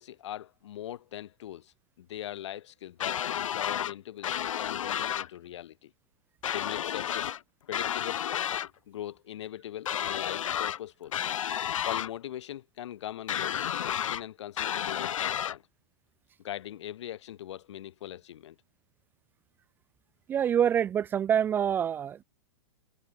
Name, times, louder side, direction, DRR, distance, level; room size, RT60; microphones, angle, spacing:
voice 1, 0.0-5.9 6.5-7.3 7.7-8.2 8.9-11.1 11.8-15.6 16.4-18.6, left 12 dB, 60° left, 4.8 m, -41 dB
sound 1, 3.0-3.9 4.2-5.3 6.4-7.4 7.7-8.7 9.9-10.8 11.1-12.1 13.3-14.2 14.6-15.6, left 10 dB, 85° left, 1.4 m, -31 dB
voice 2, 20.3-22.2, right 9 dB, 10° right, 0.7 m, -26 dB
supercardioid pair, 170°, 16 cm